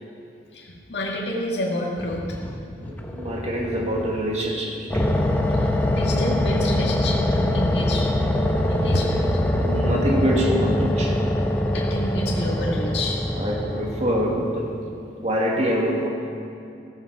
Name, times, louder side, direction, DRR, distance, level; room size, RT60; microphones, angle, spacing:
voice 1, 0.5-2.2 5.6-8.1 8.7-9.3 11.7-13.2, left 1 dB, 65° left, -3 dB, 2.1 m, -28 dB
sound 1, 2.0-4.2 4.9-14.3, left 1 dB, 10° left, 1.1 m, -23 dB
voice 2, 2.8-5.1 9.6-11.2 13.3-14.7 15.2-16.1, equal, 35° right, -1 dB, 2.3 m, -25 dB
15.0 x 14.5 x 4.9 m, 2.6 s
head